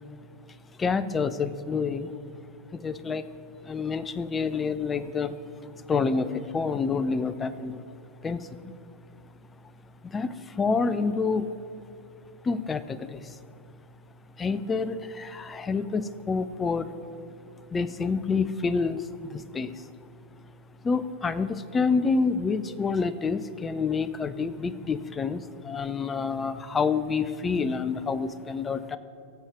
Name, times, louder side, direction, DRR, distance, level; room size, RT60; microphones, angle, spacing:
voice 1, 0.8-2.1 2.7-3.2 3.7-5.3 5.9-7.8 8.2-8.5 10.0-11.5 12.4-13.2 14.4-16.9 17.7-19.0 19.3-19.7 20.8-29.0, left 4 dB, 15° left, 14 dB, 0.4 m, -28 dB
16.0 x 6.9 x 3.6 m, 2.6 s
figure-of-eight pair, 90°, 0 cm